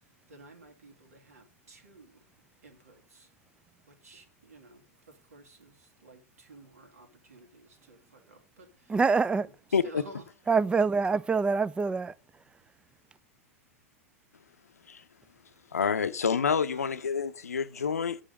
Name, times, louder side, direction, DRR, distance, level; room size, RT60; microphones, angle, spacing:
voice 1, 0.3-2.2 2.6-3.3 3.9-9.0 9.3-10.2 16.7-17.0, right 2 dB, 75° right, 2.1 m, -53 dB
voice 2, 8.9-9.5 10.5-12.1, right 4 dB, 10° right, 0.3 m, -25 dB
voice 3, 9.7-10.0 14.9-15.0 15.7-18.2, left 6 dB, 80° left, 0.6 m, -28 dB
8.9 x 5.0 x 6.4 m
figure-of-eight pair, 95°, 8 cm